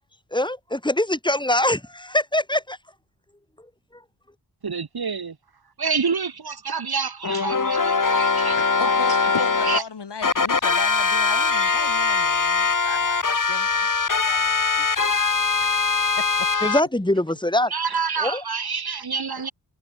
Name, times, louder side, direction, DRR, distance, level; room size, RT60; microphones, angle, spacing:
voice 1, 0.3-2.8 16.6-17.7 18.2-18.4, left 1 dB, 10° left, 5.0 m, -23 dB
voice 2, 4.6-5.4 5.8-8.9 9.6-9.8 17.7-19.5, right 5 dB, 55° right, 3.4 m, -28 dB
sound 1, 7.2-9.8 10.2-16.8, left 4 dB, 45° left, 3.4 m, -21 dB
voice 3, 8.6-14.9 15.9-16.5, left 5 dB, 65° left, 7.5 m, -35 dB
cardioid pair, 70°, 45 cm